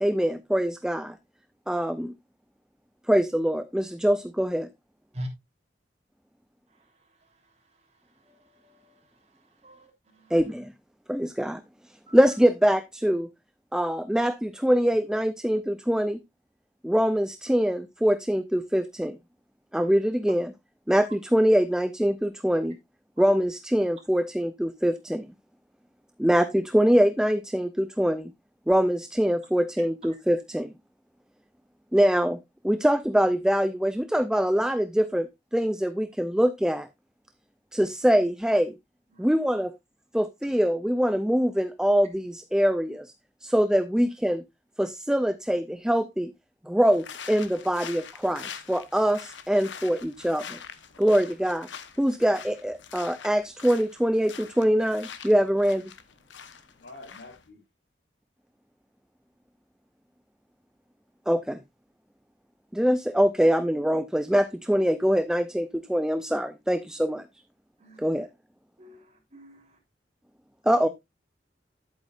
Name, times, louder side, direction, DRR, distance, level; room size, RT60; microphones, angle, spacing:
voice 1, 0.0-1.2 1.7-2.1 3.1-4.7 10.3-10.7 11.1-11.6 12.1-13.3 13.7-16.2 16.8-19.2 19.7-20.5 20.9-22.8 23.2-25.3 26.2-28.3 28.7-30.7 31.9-35.3 35.5-36.9 37.7-38.7 39.2-39.7 40.1-43.1 43.4-44.4 44.8-46.3 46.6-50.6 51.0-51.7 52.0-55.9 61.3-61.6 62.7-67.3 68.0-68.3 70.7-70.9, equal, 5° right, 0.4 m, -24 dB
voice 2, 8.3-9.0 9.6-9.9 10.1-10.3 12.1-12.2 19.8-19.9 39.1-39.3 67.8-68.2 68.8-69.8, equal, 40° right, 3.3 m, -43 dB
sound 1, 46.9-57.5, left 7 dB, 90° left, 1.1 m, -44 dB
voice 3, 56.8-57.6 70.6-70.9, left 2 dB, 70° left, 3.3 m, -46 dB
10.5 x 8.5 x 2.5 m
head